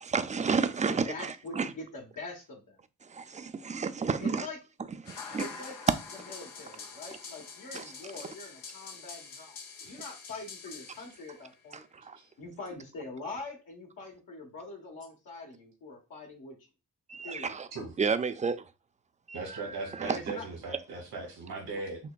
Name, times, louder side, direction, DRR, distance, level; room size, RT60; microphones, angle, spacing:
voice 1, 0.0-1.7 3.0-4.5 4.8-5.4 6.1-6.4 7.7-7.9 11.7-12.2 17.1-17.7 18.0-18.7 19.3-20.3, right 5 dB, 20° right, 0.4 m, -32 dB
voice 2, 0.9-2.8 4.2-4.6 5.4-5.7 6.3-9.6 9.8-11.8 12.4-16.5 17.2-17.6 20.1-20.4, left 3 dB, 70° left, 1.2 m, -43 dB
sound 1, 5.1-11.5, left 5 dB, 90° left, 0.8 m, -45 dB
voice 3, 19.3-22.0, right 3 dB, 85° right, 2.1 m, -39 dB
5.8 x 2.2 x 2.3 m
cardioid pair, 60°, 34 cm